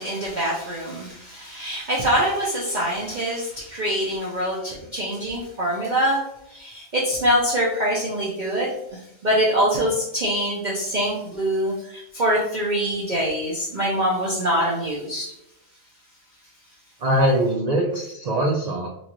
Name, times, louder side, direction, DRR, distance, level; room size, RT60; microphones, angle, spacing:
voice 1, 0.0-15.3, equal, 45° right, -6 dB, 0.7 m, -24 dB
voice 2, 17.0-18.9, right 1 dB, 90° right, -1 dB, 0.3 m, -22 dB
4.1 x 2.4 x 3.0 m, 0.80 s
omnidirectional pair, 1.3 m